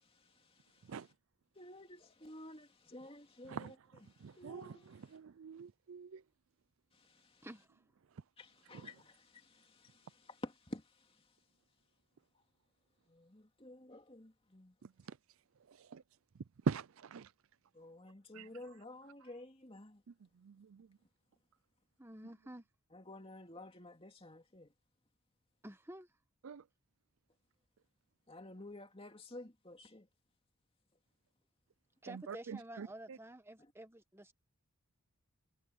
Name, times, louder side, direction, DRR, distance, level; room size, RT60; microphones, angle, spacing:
voice 1, 1.6-3.7 4.3-4.9 7.0-7.5 8.4-10.8 13.1-14.7 17.7-20.0 22.9-24.7 28.3-30.1, left 1 dB, 25° left, 2.6 m, -52 dB
voice 2, 4.2-6.2 8.8-8.9 15.1-15.2 15.7-16.0 16.7-17.3 18.3-18.5 20.4-20.9 26.4-26.6 32.1-32.9, right 5 dB, 65° right, 0.4 m, -42 dB
voice 3, 7.4-7.8 22.0-22.6 25.6-26.1 32.0-34.3, right 1 dB, 10° right, 1.2 m, -50 dB
head